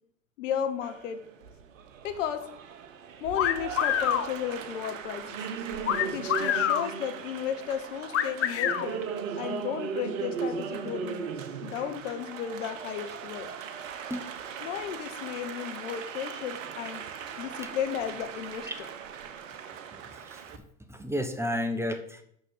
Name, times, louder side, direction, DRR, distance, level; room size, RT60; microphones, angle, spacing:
voice 1, 0.4-1.2 2.0-2.4 3.2-5.4 6.1-9.0 9.4-11.3 11.6-13.5 14.6-17.0 17.4-18.7, left 9 dB, 70° left, 8 dB, 1.1 m, -34 dB
Applause, 0.8-20.6, right 6 dB, 75° right, 0.9 m, -38 dB
sound 1, 3.3-4.3 5.8-6.9 8.1-8.8, left 10 dB, 35° left, 0.9 m, -26 dB
voice 2, 14.1-14.7 18.6-18.7 20.1-20.4 20.9-22.2, equal, 5° right, 6 dB, 1.1 m, -32 dB
6.4 x 6.3 x 6.3 m, 0.69 s
figure-of-eight pair, 70°, 39 cm